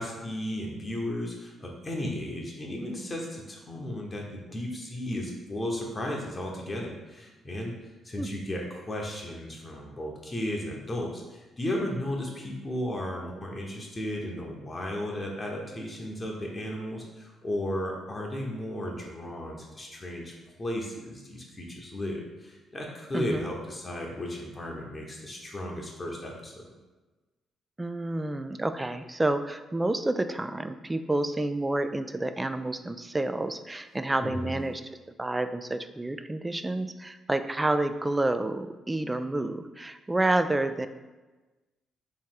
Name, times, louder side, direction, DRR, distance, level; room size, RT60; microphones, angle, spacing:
voice 1, 0.0-7.7 8.0-26.7 34.2-34.5, left 1 dB, 30° left, -1 dB, 0.9 m, -35 dB
voice 2, 23.1-23.5 27.8-34.8 35.2-40.9, right 2 dB, 20° right, 10 dB, 0.3 m, -29 dB
3.3 x 3.1 x 4.5 m, 1.2 s
hypercardioid pair, 45°, 0 cm